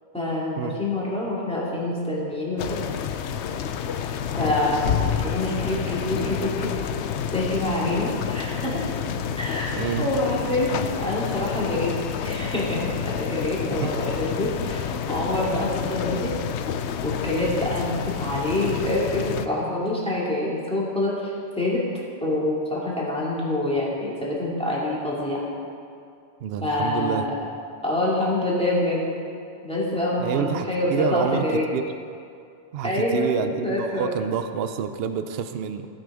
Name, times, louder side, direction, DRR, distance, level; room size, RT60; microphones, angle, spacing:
voice 1, 0.1-2.9 4.4-6.8 7.3-8.8 9.4-11.9 12.2-16.3 17.0-21.8 22.2-25.4 26.6-27.3 27.8-29.1 29.6-31.6 32.8-34.1, left 1 dB, 5° left, -6 dB, 2.4 m, -26 dB
sound 1, 2.6-19.5, left 8 dB, 75° left, 0.8 m, -29 dB
voice 2, 9.7-10.1 13.8-14.0 26.4-27.3 30.2-31.4 31.7-31.8 32.7-35.9, right 8 dB, 65° right, 9 dB, 0.8 m, -28 dB
16.0 x 6.4 x 4.9 m, 2.4 s
omnidirectional pair, 1.2 m